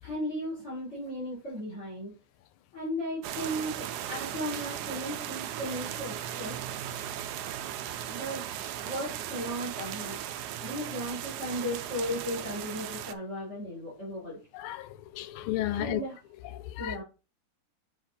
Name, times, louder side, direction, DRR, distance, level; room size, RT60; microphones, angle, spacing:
voice 1, 0.0-2.1 2.7-6.6 8.1-8.4 8.8-10.2 10.6-14.4 15.7-16.2 16.8-17.0, equal, 35° left, 4.1 m, -36 dB
sound 1, 3.2-13.1, right 11 dB, 90° right, 0.9 m, -37 dB
voice 2, 14.5-16.0 16.5-17.0, left 13 dB, 80° left, 1.4 m, -33 dB
7.4 x 3.3 x 4.2 m
omnidirectional pair, 2.3 m